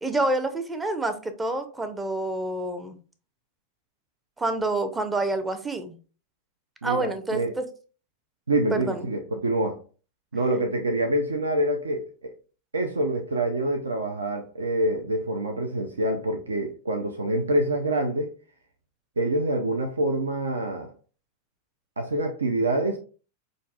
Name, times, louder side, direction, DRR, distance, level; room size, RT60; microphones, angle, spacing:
voice 1, 0.0-3.0 4.4-6.0 6.8-7.6 8.7-9.1, right 2 dB, 10° right, 0.5 m, -28 dB
voice 2, 6.8-7.5 8.5-9.8 10.3-12.3 12.7-18.3 19.2-20.9 22.0-23.0, right 1 dB, 75° right, 0.4 m, -26 dB
5.2 x 2.5 x 2.4 m
figure-of-eight pair, 90°, 0 cm